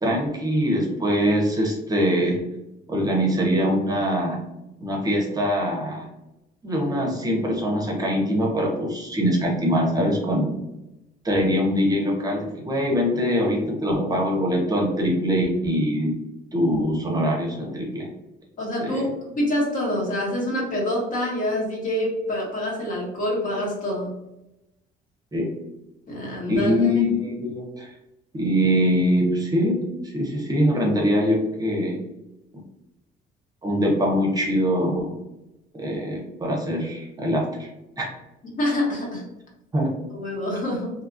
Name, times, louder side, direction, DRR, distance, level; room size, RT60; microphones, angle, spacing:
voice 1, 0.0-2.5 2.9-4.4 4.8-6.1 6.6-10.5 11.2-16.2 16.5-18.1 18.8-19.1 25.3-25.6 26.5-27.9 28.3-32.0 33.6-35.1 35.7-37.7 38.0-38.1 39.7-40.0, equal, 20° right, -1 dB, 0.6 m, -23 dB
voice 2, 18.6-24.1 26.1-26.9 38.6-39.2 40.1-40.9, left 1 dB, 50° left, -2 dB, 1.1 m, -26 dB
2.7 x 2.3 x 2.6 m, 0.93 s
cardioid pair, 110°, 17 cm